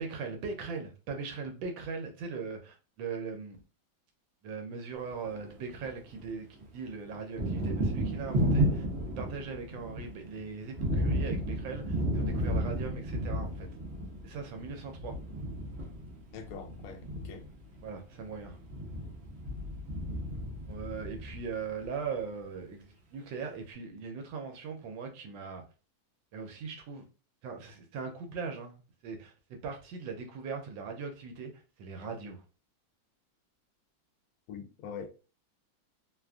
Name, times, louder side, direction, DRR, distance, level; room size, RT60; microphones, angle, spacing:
voice 1, 0.0-3.6 4.4-8.9 9.2-13.7 14.2-15.1 17.8-18.6 20.7-25.6 26.3-27.0 27.4-32.4, right 5 dB, 80° right, 1.3 m, -40 dB
Thunder, 5.1-6.3 6.6-21.9, equal, 60° right, 0.7 m, -33 dB
voice 2, 16.3-17.4 34.5-35.1, left 7 dB, 70° left, 0.8 m, -43 dB
3.1 x 2.4 x 2.3 m
omnidirectional pair, 2.0 m